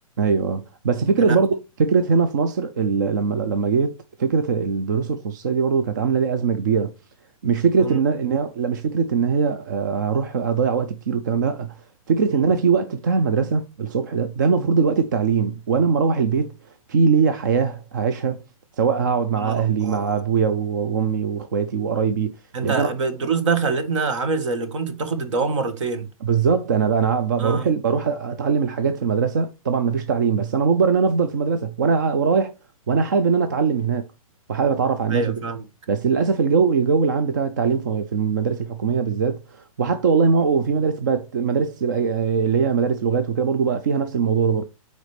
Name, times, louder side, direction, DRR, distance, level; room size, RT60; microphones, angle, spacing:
voice 1, 0.2-6.9 7.4-11.7 12.1-16.5 16.9-18.4 18.8-22.3 22.6-22.9 26.2-32.5 32.9-34.1 34.5-35.4 35.9-44.6, right 5 dB, 30° right, 0.4 m, -21 dB
voice 2, 19.4-20.2 22.5-26.1 27.4-27.7 35.1-35.6, right 4 dB, 55° right, 1.4 m, -25 dB
9.1 x 4.1 x 3.2 m
hypercardioid pair, 175°, 19 cm